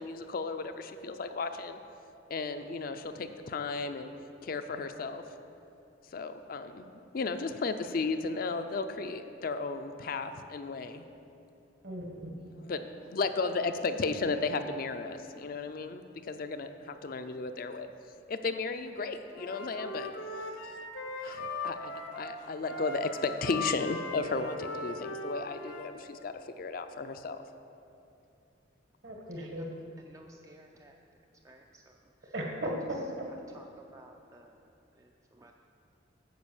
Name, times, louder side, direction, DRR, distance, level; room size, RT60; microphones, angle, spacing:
voice 1, 0.0-1.8 2.3-4.1 4.4-5.2 6.1-11.0 12.6-17.9 18.3-20.1 21.2-27.4, left 4 dB, 50° left, 8 dB, 0.4 m, -34 dB
voice 2, 11.8-12.3 29.0-29.6 32.3-33.3, right 1 dB, 65° right, 1 dB, 1.5 m, -36 dB
Wind instrument woodwind instrument, 19.3-25.9, left 2 dB, 80° left, 0.7 m, -39 dB
voice 3, 30.1-30.9 31.5-31.6 33.5-33.6 33.9-34.5 35.4-35.5, right 2 dB, 15° right, 2 dB, 0.3 m, -54 dB
9.4 x 5.2 x 7.1 m, 2.7 s
head